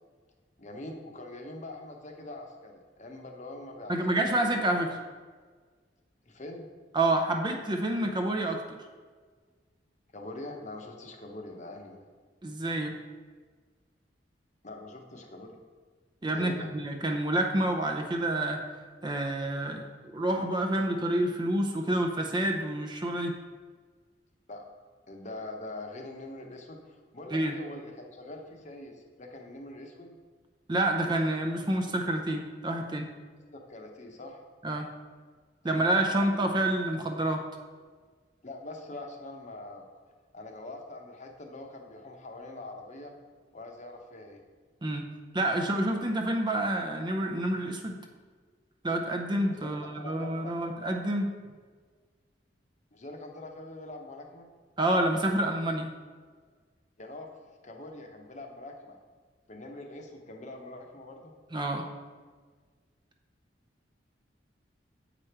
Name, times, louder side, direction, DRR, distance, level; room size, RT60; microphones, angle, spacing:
voice 1, 0.6-4.4 6.2-6.7 10.1-12.1 14.6-15.5 16.3-16.7 24.5-24.6 25.1-30.2 33.5-34.4 35.6-35.8 36.2-36.3 38.4-39.8 40.3-43.1 43.5-44.4 49.6-50.8 52.9-54.5 57.0-57.3 57.6-59.0 59.5-61.3, left 2 dB, 45° left, 2 dB, 0.9 m, -43 dB
voice 2, 3.9-5.0 6.9-8.8 12.4-13.0 16.2-18.6 19.0-19.9 20.1-23.3 27.3-27.5 30.7-33.1 34.6-34.9 35.6-37.5 44.8-45.1 45.3-48.0 48.8-51.3 54.8-55.9 61.5-61.9, right 1 dB, 25° right, 3 dB, 0.6 m, -28 dB
7.6 x 5.1 x 4.4 m, 1.5 s
head